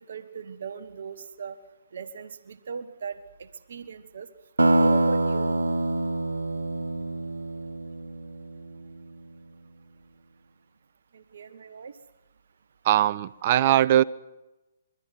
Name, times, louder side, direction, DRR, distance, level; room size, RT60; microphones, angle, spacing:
voice 1, 0.1-1.6 1.9-4.3 4.8-5.5 11.1-12.0, right 6 dB, 65° right, 1.6 m, -38 dB
sound 1, 4.6-8.9, right 2 dB, 90° right, 1.6 m, -25 dB
voice 2, 12.8-14.0, right 12 dB, 45° right, 0.8 m, -20 dB
26.5 x 23.5 x 6.0 m
hypercardioid pair, 135°, 0 cm